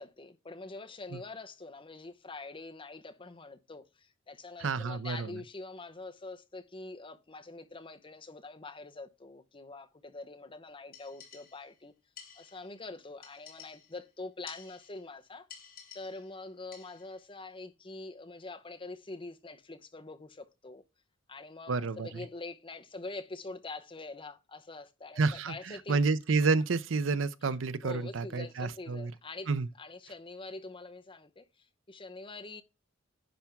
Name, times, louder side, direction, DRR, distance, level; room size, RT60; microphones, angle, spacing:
voice 1, 0.0-11.9 12.4-15.5 15.9-20.8 21.3-26.0 27.8-29.5 29.8-32.6, left 3 dB, 25° left, 0.8 m, -45 dB
voice 2, 4.6-5.4 21.7-22.3 25.2-29.1 29.5-29.7, right 4 dB, 75° right, 0.6 m, -30 dB
sound 1, 10.9-11.8 12.2-12.8 13.2-14.1 14.5-15.1 15.5-16.4 16.7-17.2, left 7 dB, 45° left, 2.7 m, -52 dB
10.5 x 3.5 x 5.8 m
head